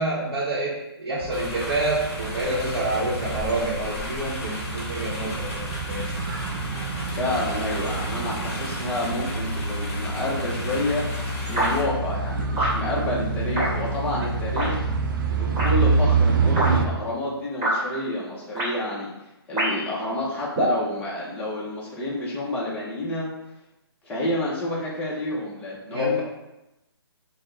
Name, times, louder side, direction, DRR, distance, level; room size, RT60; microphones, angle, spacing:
voice 1, 0.0-6.1 25.9-26.2, right 1 dB, 70° right, -6 dB, 0.9 m, -27 dB
sound 1, 1.2-16.9, right 4 dB, 50° right, 0.5 m, -27 dB
sound 2, 1.3-11.8, left 1 dB, 30° left, 0.9 m, -36 dB
voice 2, 7.2-11.1 11.5-14.8 15.2-19.1 19.5-23.3 24.0-26.2, left 1 dB, 10° left, -5 dB, 0.6 m, -29 dB
sound 3, 11.6-11.7 12.6-12.8 13.6-13.7 14.6-14.7 15.6-15.7 16.6-16.7 17.6-17.8 18.6-18.7 19.6-19.9 20.6-20.8, right 1 dB, 20° right, 1.2 m, -24 dB
3.6 x 2.1 x 3.8 m, 0.94 s
hypercardioid pair, 150°, 14 cm